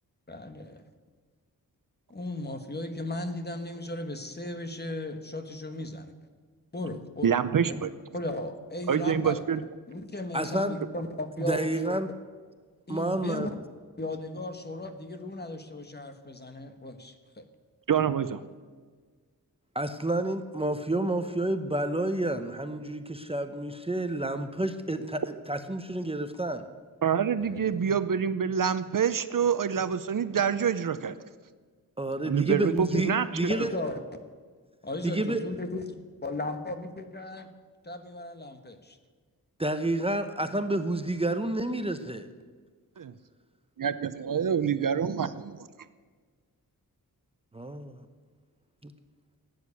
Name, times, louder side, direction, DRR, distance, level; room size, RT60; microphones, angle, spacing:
voice 1, 0.3-0.8 2.1-6.1 6.7-7.3 7.7-7.8 8.1-9.4 9.9-12.0 12.9-13.5 14.0-17.4 27.4-27.6 32.9-33.0 33.5-34.0 34.8-35.8 36.2-37.5 37.8-39.0, left 2 dB, 25° left, 7 dB, 1.3 m, -36 dB
voice 2, 7.2-7.9 8.9-9.6 17.9-18.4 27.0-31.2 32.3-33.3 43.0-43.1 43.8-45.7, right 7 dB, 60° right, 13 dB, 0.7 m, -26 dB
voice 3, 10.3-10.8 11.4-12.1 12.9-13.5 19.7-26.7 32.0-33.7 35.0-35.4 39.6-42.3 47.5-48.0 48.8-48.9, right 1 dB, 15° right, 8 dB, 0.8 m, -29 dB
16.0 x 9.5 x 8.3 m, 1.5 s
wide cardioid pair, 140°, 37 cm